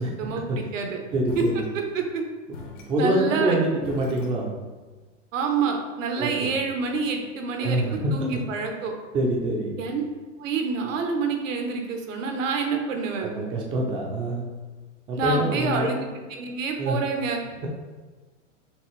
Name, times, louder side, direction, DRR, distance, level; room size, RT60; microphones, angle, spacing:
voice 1, 0.0-1.0 1.4-1.5 1.7-2.2 2.9-3.6 5.3-7.8 8.1-8.9 9.8-10.0 10.4-13.3 15.1-17.4, right 5 dB, 85° right, 3 dB, 0.9 m, -27 dB
voice 2, 1.1-1.7 2.9-4.5 6.2-6.5 7.6-8.0 9.1-9.7 13.2-14.4 15.1-15.9 16.8-17.0, right 1 dB, 15° right, -1 dB, 0.3 m, -25 dB
sound 1, 1.3-2.2 2.5-4.9, left 3 dB, 75° left, 1.1 m, -44 dB
5.7 x 2.5 x 3.1 m, 1.3 s
supercardioid pair, 140°, 38 cm